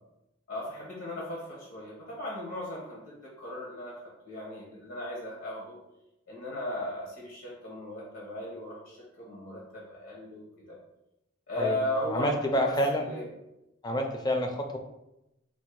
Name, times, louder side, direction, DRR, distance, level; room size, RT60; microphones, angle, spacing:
voice 1, 0.5-4.0 4.2-5.8 6.3-10.4 10.7-10.8 11.5-13.3, left 1 dB, 75° left, -4 dB, 1.2 m, -36 dB
voice 2, 12.1-13.1 13.8-14.8, equal, 20° left, 3 dB, 0.4 m, -28 dB
4.1 x 2.2 x 4.5 m, 0.89 s
head